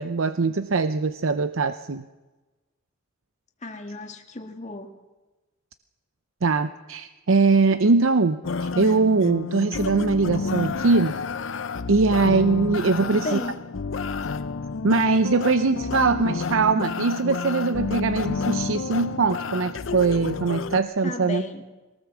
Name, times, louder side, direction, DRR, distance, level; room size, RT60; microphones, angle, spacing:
voice 1, 0.0-2.0 6.4-11.1 11.9-13.4 14.8-21.4, right 4 dB, 85° right, 11 dB, 0.7 m, -22 dB
voice 2, 3.6-4.9 13.0-13.6 21.0-21.6, left 2 dB, 35° left, 4 dB, 2.0 m, -34 dB
sound 1, 8.4-20.8, left 4 dB, 70° left, 0.6 m, -30 dB
22.0 x 19.0 x 7.2 m, 1.2 s
head